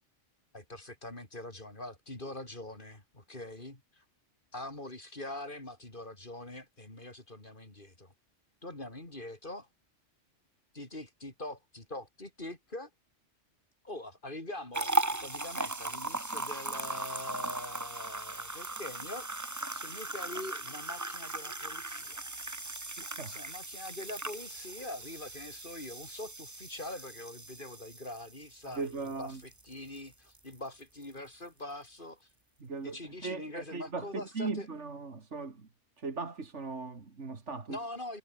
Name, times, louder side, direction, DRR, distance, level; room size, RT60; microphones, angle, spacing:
voice 1, 0.5-4.0 4.5-8.1 8.6-9.7 10.7-12.9 13.8-19.3 19.7-22.3 23.3-32.3 32.8-34.7 37.7-38.2, left 1 dB, 45° left, 4.5 m, -43 dB
sound 1, 14.7-30.0 30.3-30.5 31.0-31.1, right 2 dB, 15° right, 1.1 m, -38 dB
voice 2, 23.0-23.4 28.6-29.4 32.6-35.7 36.0-37.8, right 4 dB, 70° right, 2.7 m, -38 dB
omnidirectional pair, 1.2 m